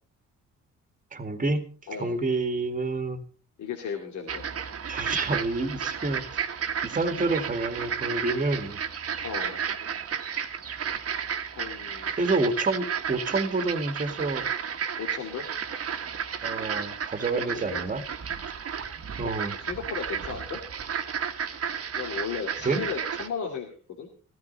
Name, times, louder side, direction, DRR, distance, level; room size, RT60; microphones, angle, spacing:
voice 1, 1.1-1.7 2.0-3.3 4.9-6.2 6.8-8.8 12.2-14.5 16.4-18.0 19.2-19.6 22.6-22.8, right 3 dB, 25° right, 9 dB, 1.9 m, -28 dB
voice 2, 1.9-2.2 3.6-4.5 9.2-9.6 11.6-12.2 15.0-15.5 17.3-17.8 19.2-19.3 19.6-20.6 21.9-24.1, left 6 dB, 75° left, 1 dB, 2.7 m, -35 dB
sound 1, 4.3-23.3, right 7 dB, 50° right, 1.6 m, -33 dB
15.5 x 13.5 x 4.1 m, 0.37 s
cardioid pair, 90°, 30 cm